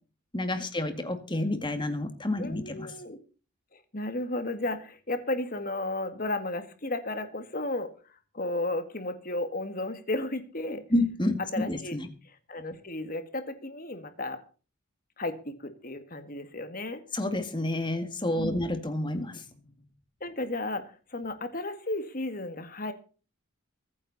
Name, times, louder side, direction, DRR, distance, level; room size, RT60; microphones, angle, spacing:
voice 1, 0.3-2.9 10.9-11.4 11.7-12.1 17.1-19.5, left 1 dB, 20° left, 8 dB, 2.1 m, -29 dB
voice 2, 2.4-3.2 3.7-7.9 8.3-10.8 11.5-12.0 12.2-14.4 15.2-17.0 18.3-18.6 20.2-22.9, left 2 dB, 40° left, 9 dB, 1.9 m, -34 dB
23.5 x 9.9 x 4.2 m, 0.37 s
head